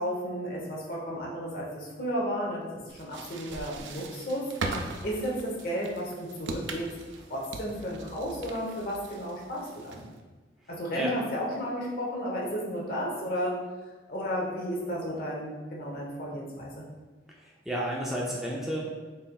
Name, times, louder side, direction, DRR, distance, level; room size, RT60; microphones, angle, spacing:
voice 1, 0.0-4.5 5.0-6.9 7.3-10.0 10.7-13.6 14.1-16.9, equal, 55° left, -3 dB, 0.8 m, -33 dB
sound 1, 2.9-10.2, right 3 dB, 75° right, 0.4 m, -40 dB
voice 2, 17.3-18.8, equal, ahead, -4 dB, 0.3 m, -32 dB
4.2 x 3.2 x 2.3 m, 1.3 s
head